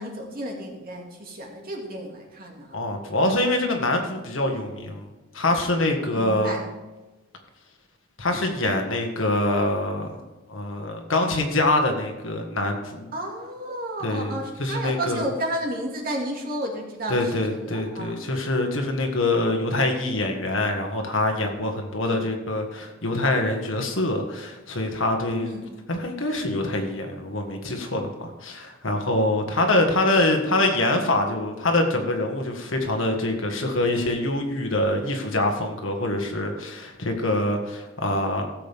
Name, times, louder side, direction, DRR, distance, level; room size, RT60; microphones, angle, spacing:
voice 1, 0.0-2.8 6.1-6.7 13.1-18.2 22.1-22.2 25.4-25.7, right 1 dB, 50° right, 0 dB, 2.2 m, -32 dB
voice 2, 2.7-5.1 5.3-6.6 8.2-10.2 10.5-13.1 14.0-15.2 17.1-25.5 25.9-38.5, left 2 dB, 85° left, 3 dB, 1.7 m, -25 dB
16.5 x 7.7 x 3.6 m, 1.1 s
head